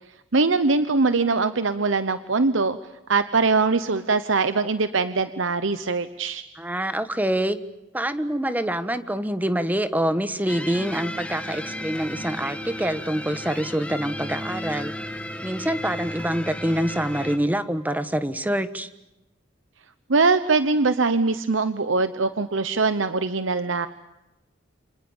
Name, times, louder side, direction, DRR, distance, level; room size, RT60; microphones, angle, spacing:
voice 1, 0.3-2.8 3.1-6.4 20.1-23.9, right 3 dB, 90° right, 11 dB, 1.0 m, -22 dB
voice 2, 6.6-7.6 7.9-14.9 15.4-18.9, right 1 dB, 10° right, 11 dB, 1.3 m, -26 dB
sound 1, 10.5-17.4, left 1 dB, 5° left, 2.0 m, -34 dB
29.0 x 26.0 x 7.3 m, 0.94 s
head